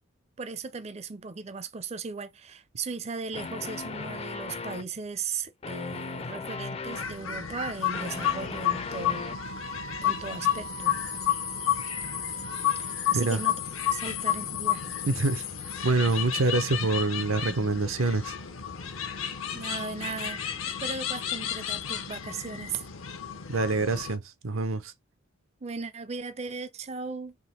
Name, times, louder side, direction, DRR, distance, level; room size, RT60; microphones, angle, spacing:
voice 1, 0.4-9.3 10.0-11.0 12.8-13.6 13.9-15.0 19.5-22.8 25.6-27.4, right 4 dB, 30° right, 0.5 m, -37 dB
sound 1, 3.3-5.0 5.6-7.1 7.7-9.5, left 4 dB, 30° left, 0.4 m, -37 dB
sound 2, 6.9-24.2, left 10 dB, 85° left, 0.9 m, -31 dB
Wind instrument woodwind instrument, 9.1-13.3, right 5 dB, 60° left, 0.8 m, -43 dB
voice 2, 15.1-15.4 15.8-18.3 23.5-24.9, right 3 dB, 85° right, 0.7 m, -26 dB
3.7 x 2.9 x 4.2 m
head